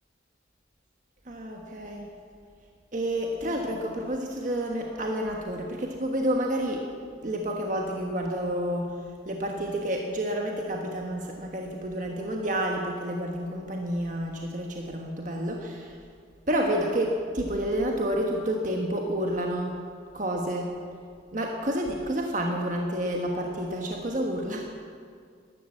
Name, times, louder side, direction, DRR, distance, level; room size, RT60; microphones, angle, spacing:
voice 1, 1.3-2.1 2.9-6.8 7.2-8.9 9.2-16.0 16.5-19.7 20.1-20.7 21.3-24.7, right 1 dB, 40° right, 1 dB, 1.3 m, -29 dB
13.5 x 12.0 x 7.7 m, 2.1 s
head